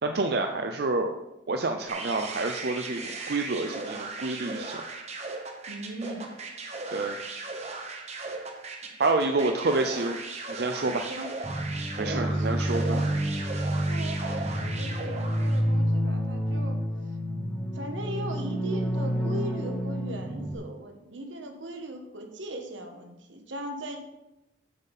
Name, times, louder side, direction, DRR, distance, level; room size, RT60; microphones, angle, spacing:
voice 1, 0.0-1.1 1.5-4.8 6.9-7.2 9.0-10.2 10.5-11.1 12.0-13.0, right 3 dB, 55° right, 5 dB, 0.6 m, -28 dB
sound 1, 1.9-15.7, right 3 dB, 35° right, 1.2 m, -38 dB
voice 2, 5.7-6.3 9.4-9.6 10.8-11.3 12.0-13.1 13.6-16.8 17.7-24.0, right 1 dB, 80° right, 4 dB, 1.5 m, -39 dB
sound 2, 11.4-20.5, equal, ahead, 1.4 m, -29 dB
7.9 x 7.4 x 5.4 m, 0.93 s
head